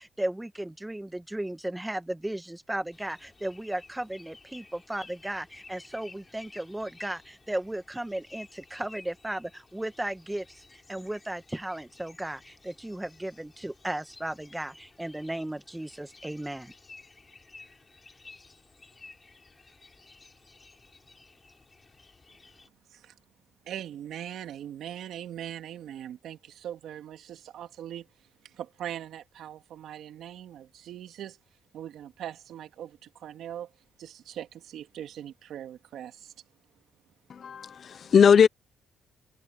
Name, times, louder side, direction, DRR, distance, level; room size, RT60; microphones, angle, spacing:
voice 1, 0.0-16.7, right 1 dB, 10° right, 1.6 m, -35 dB
sound 1, 2.9-22.7, left 3 dB, 25° left, 7.6 m, -54 dB
voice 2, 23.6-28.1 28.4-31.4 31.7-33.7 34.0-36.3, right 10 dB, 75° right, 2.5 m, -41 dB
voice 3, 37.3-38.5, left 7 dB, 50° left, 0.7 m, -19 dB
cardioid pair, 90°, 0 cm